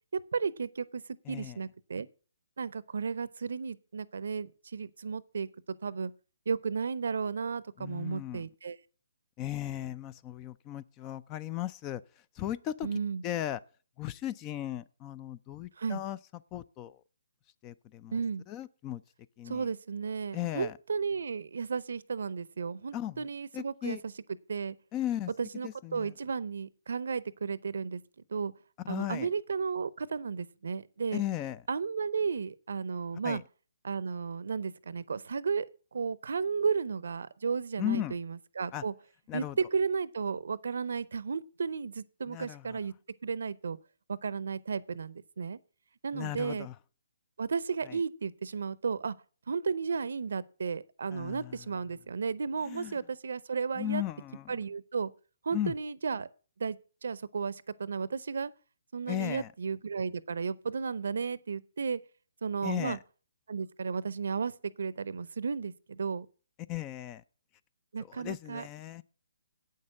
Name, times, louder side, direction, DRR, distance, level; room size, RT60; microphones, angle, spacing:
voice 1, 0.1-2.1 2.6-5.5 5.8-6.1 6.5-8.8 12.8-13.2 15.8-16.0 18.1-18.4 19.5-24.0 24.5-24.7 25.4-28.0 28.3-28.5 28.9-31.2 31.7-33.4 33.8-35.7 35.9-38.9 39.3-42.9 43.2-43.8 44.1-45.6 46.0-46.7 47.4-49.1 49.5-54.0 54.5-55.1 55.4-56.3 56.6-58.5 58.9-62.0 62.4-63.0 63.5-64.5 64.8-66.3 67.9-68.7, right 5 dB, 70° right, 0.6 m, -34 dB
voice 2, 1.3-1.6 7.8-8.4 9.4-12.0 12.4-12.9 13.2-13.6 14.0-16.2 16.5-17.0 17.6-18.2 18.5-19.0 19.4-19.6 20.3-20.8 22.9-23.2 23.5-24.0 24.9-25.3 25.6-26.1 28.9-29.3 31.1-31.6 33.2-33.4 37.8-38.1 38.7-38.8 39.3-39.6 42.3-42.8 46.1-46.7 47.9-48.0 51.1-51.6 52.6-52.9 53.8-54.6 55.5-55.7 59.1-59.5 62.6-63.0 66.7-67.2 68.1-69.0, left 12 dB, 25° left, 0.4 m, -36 dB
8.6 x 6.6 x 7.4 m
hypercardioid pair, 145°, 0 cm